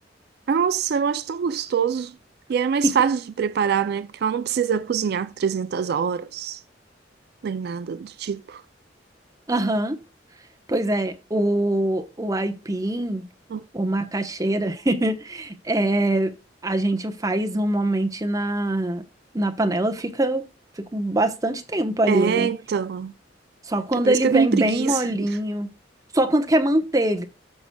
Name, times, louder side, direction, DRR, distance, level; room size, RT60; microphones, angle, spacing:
voice 1, 0.5-2.2 2.5-6.6 7.4-8.6 13.5-13.6 22.1-23.1 24.0-25.4, right 6 dB, 60° right, 0.3 m, -24 dB
voice 2, 9.5-10.0 10.7-13.2 13.7-16.3 16.6-19.0 19.3-20.4 20.9-22.5 23.7-25.7 26.1-27.2, right 1 dB, 20° right, 0.9 m, -23 dB
13.5 x 6.0 x 2.2 m
head